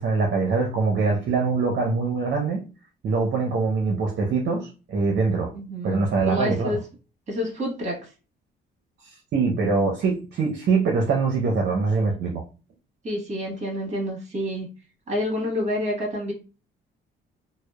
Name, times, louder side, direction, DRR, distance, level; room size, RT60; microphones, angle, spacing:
voice 1, 0.0-2.6 3.0-5.5 5.8-6.8 9.3-12.4, right 4 dB, 60° right, 0.6 m, -23 dB
voice 2, 5.5-6.8 7.3-8.1 13.0-14.7 15.1-16.3, left 1 dB, 35° right, 1.3 m, -28 dB
2.7 x 2.0 x 2.2 m
cardioid pair, 90°, 20 cm